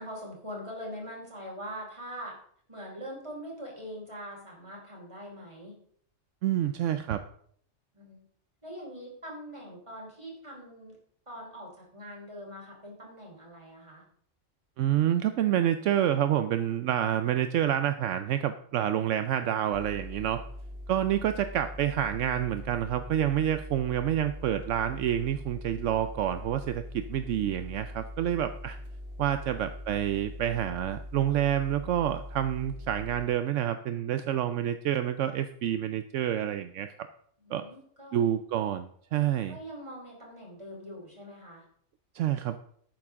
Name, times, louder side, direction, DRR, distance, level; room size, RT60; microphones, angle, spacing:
voice 1, 0.0-2.4 2.7-5.8 7.9-8.2 8.6-11.0 11.3-14.0 37.4-38.2 39.5-41.6, equal, 25° right, -2 dB, 4.0 m, -43 dB
voice 2, 6.4-7.2 14.8-20.4 20.9-28.8 29.2-36.9 37.5-37.7 38.1-39.6 42.1-42.6, right 11 dB, 75° right, 10 dB, 0.9 m, -28 dB
sound 1, 19.7-33.3, left 1 dB, 50° right, 1.7 m, -42 dB
12.0 x 9.0 x 3.7 m, 0.62 s
omnidirectional pair, 1.3 m